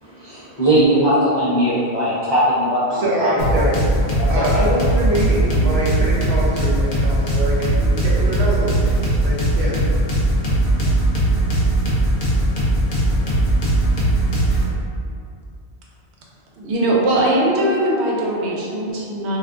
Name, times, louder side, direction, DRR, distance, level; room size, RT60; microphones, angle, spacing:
voice 1, 0.0-3.3 3.6-3.7 4.2-4.6, right 1 dB, 35° left, -11 dB, 0.4 m, -19 dB
voice 2, 2.9-4.0 4.3-9.8, right 1 dB, 45° right, -6 dB, 0.5 m, -24 dB
sound 1, 3.4-14.7, right 1 dB, 60° left, 0.8 m, -19 dB
voice 3, 16.6-19.4, right 1 dB, 85° right, -3 dB, 0.9 m, -20 dB
2.4 x 2.3 x 3.6 m, 2.4 s
omnidirectional pair, 1.1 m